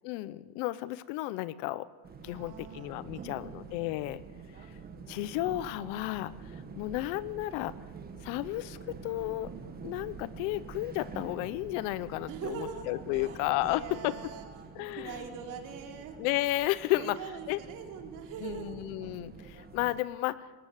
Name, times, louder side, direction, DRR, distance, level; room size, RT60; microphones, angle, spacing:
voice 1, 0.0-1.9 2.2-4.2 5.1-6.3 6.8-7.7 8.2-9.5 9.8-14.1 14.8-15.2 16.2-17.2 17.5-17.6 18.4-20.4, left 17 dB, 70° left, 17 dB, 0.9 m, -33 dB
sound 1, 2.0-20.0, right 5 dB, 20° right, 1.8 m, -47 dB
voice 2, 2.3-2.9 3.1-3.7 12.3-14.5 14.9-16.2 16.8-18.8, right 6 dB, 45° right, 3 dB, 3.3 m, -43 dB
19.5 x 18.0 x 8.1 m, 1.4 s
cardioid pair, 160°, 42 cm